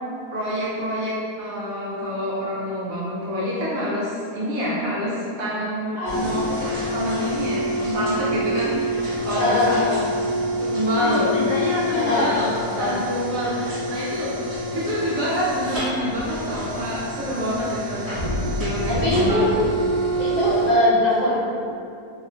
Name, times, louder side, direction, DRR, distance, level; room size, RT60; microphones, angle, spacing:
voice 1, 0.3-6.4 6.9-9.8 10.6-14.3 14.7-18.0 18.6-19.4, equal, 70° right, -8 dB, 0.9 m, -27 dB
sound 1, 6.0-20.7, equal, 45° right, 1.3 m, -27 dB
voice 2, 9.3-10.0 11.3-11.4 11.9-12.4 12.7-13.0 18.9-19.6 20.2-21.4, left 1 dB, 60° left, -10 dB, 1.0 m, -22 dB
2.8 x 2.1 x 2.4 m, 2.5 s
omnidirectional pair, 1.7 m